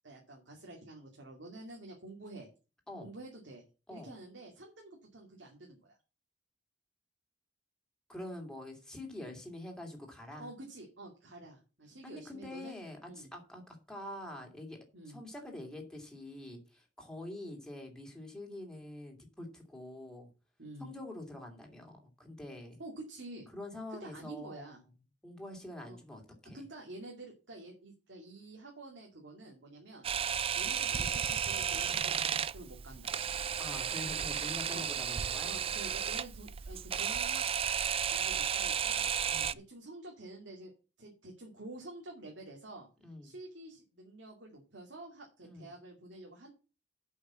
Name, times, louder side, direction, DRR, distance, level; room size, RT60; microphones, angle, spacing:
voice 1, 0.0-2.5 3.0-3.6 3.9-5.9 10.4-12.7 13.1-13.3 14.9-15.2 20.6-20.9 22.8-23.5 23.9-24.8 25.9-26.0 26.5-30.0 30.5-33.2 34.7-34.9 35.4-37.4 38.1-39.1 39.5-40.7 41.0-42.9 43.2-46.5, right 2 dB, 70° right, 0 dB, 2.6 m, -49 dB
voice 2, 8.1-10.5 12.0-14.8 15.1-20.3 20.8-22.8 23.5-24.8 25.2-26.6 33.6-35.6 39.3-39.6 43.0-43.3 45.4-45.7, left 1 dB, 5° left, 1 dB, 2.6 m, -45 dB
Camera, 30.0-39.5, right 8 dB, 30° right, 0.4 m, -33 dB
8.4 x 5.6 x 7.5 m, 0.33 s
head